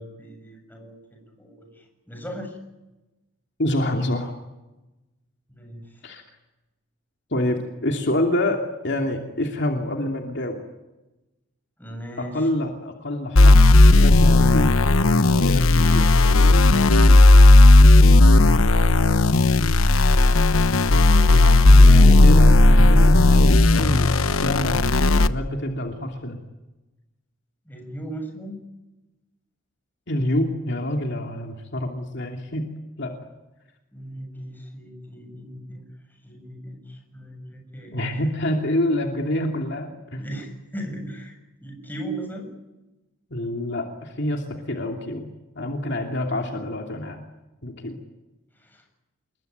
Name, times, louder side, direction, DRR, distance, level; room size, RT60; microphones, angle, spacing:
voice 1, 0.0-2.6 5.5-6.0 11.8-12.5 20.7-21.5 22.8-23.1 27.7-28.7 33.9-35.9 36.2-38.2 40.2-41.3 41.6-42.5 48.6-48.8, right 1 dB, 10° left, 3 dB, 7.7 m, -38 dB
voice 2, 3.6-4.3 6.0-6.2 7.3-10.6 12.2-13.7 14.0-16.6 21.3-26.4 30.1-32.7 33.0-33.1 37.9-40.2 43.3-45.3 45.6-47.2 47.6-48.0, left 1 dB, 55° left, 2 dB, 2.8 m, -27 dB
sound 1, 13.4-25.3, left 2 dB, 75° left, 1.1 m, -14 dB
28.0 x 21.5 x 9.4 m, 1.0 s
head